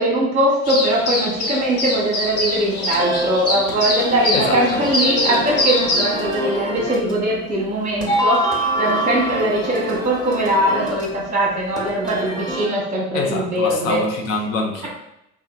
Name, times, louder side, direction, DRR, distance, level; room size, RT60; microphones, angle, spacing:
voice 1, 0.0-8.5 8.8-14.0, right 1 dB, 20° right, -3 dB, 0.8 m, -21 dB
sound 1, 0.6-6.1, left 1 dB, 40° left, 0.8 m, -23 dB
sound 2, 2.2-12.7, equal, 10° left, 0.9 m, -26 dB
voice 2, 4.3-4.9 13.1-14.9, left 3 dB, 80° left, 1 dB, 0.6 m, -25 dB
2.7 x 2.2 x 2.3 m, 0.82 s
hypercardioid pair, 55°, 39 cm